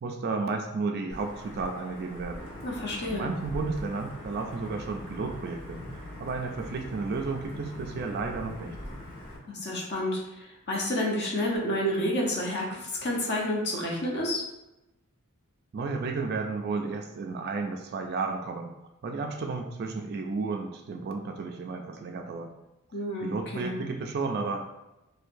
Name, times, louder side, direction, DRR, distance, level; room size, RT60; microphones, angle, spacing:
voice 1, 0.0-2.4 3.0-5.8 6.2-8.8 15.7-18.7 19.0-22.5 23.2-24.7, right 4 dB, 45° right, 3 dB, 0.3 m, -32 dB
Wind / Thunder / Rain, 1.1-9.4, left 1 dB, 30° left, 1.4 m, -42 dB
voice 2, 2.6-3.3 9.5-14.4 22.9-23.8, left 1 dB, 50° left, -2 dB, 0.8 m, -30 dB
4.4 x 2.2 x 2.6 m, 0.94 s
head